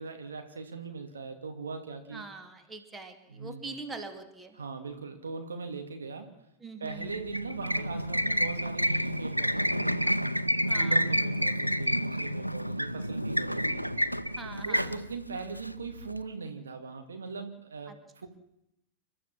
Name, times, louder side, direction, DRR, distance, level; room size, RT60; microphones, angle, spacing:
voice 1, 0.0-2.2 3.3-3.6 4.6-6.4 6.8-10.1 10.7-14.2 14.6-18.3, right 4 dB, 70° right, 5 dB, 2.5 m, -40 dB
voice 2, 2.1-4.6 6.6-7.2 10.7-11.0 14.4-15.0 17.9-18.0, right 3 dB, 15° right, 7 dB, 2.6 m, -43 dB
sound 1, 6.9-16.2, equal, 90° left, 0.7 m, -29 dB
29.0 x 12.5 x 7.5 m, 0.82 s
figure-of-eight pair, 90°, 0 cm